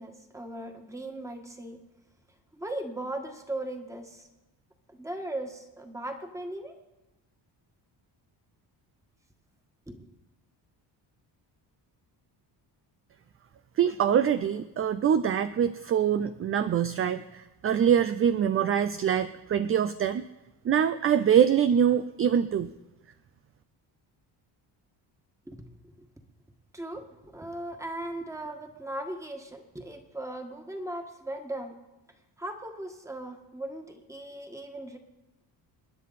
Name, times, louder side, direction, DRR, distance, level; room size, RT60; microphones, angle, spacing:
voice 1, 0.0-1.8 2.5-4.3 4.9-6.7 9.9-10.1 25.5-26.1 26.7-31.7 32.4-35.0, right 1 dB, 5° right, 4 dB, 1.6 m, -38 dB
voice 2, 13.8-20.2 20.6-22.7, right 8 dB, 30° right, 11 dB, 0.4 m, -24 dB
28.0 x 10.0 x 4.2 m, 1.0 s
cardioid pair, 140°, 43 cm